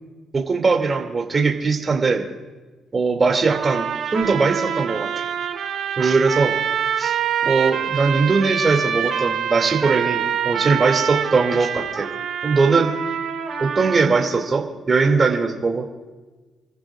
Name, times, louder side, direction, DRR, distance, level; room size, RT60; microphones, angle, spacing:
voice 1, 0.3-2.2 2.9-3.9 4.1-5.2 6.0-6.5 7.0-7.1 7.4-12.1 12.4-12.9 13.6-16.1, right 4 dB, 35° right, 2 dB, 2.4 m, -20 dB
sound 1, 3.5-14.5, right 8 dB, 70° right, 2.8 m, -25 dB
28.5 x 15.0 x 2.4 m, 1.2 s
cardioid pair, 90°, 0 cm